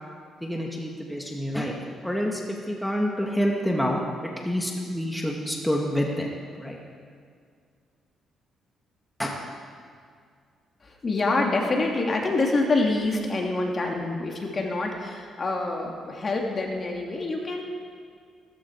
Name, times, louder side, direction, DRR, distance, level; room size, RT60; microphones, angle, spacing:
voice 1, 0.4-1.7 2.0-6.3 6.6-6.8 9.2-9.4, equal, ahead, -1 dB, 2.0 m, -27 dB
voice 2, 10.8-17.6, left 2 dB, 35° left, 0 dB, 2.6 m, -26 dB
17.0 x 14.5 x 4.8 m, 2.1 s
cardioid pair, 90°, 0 cm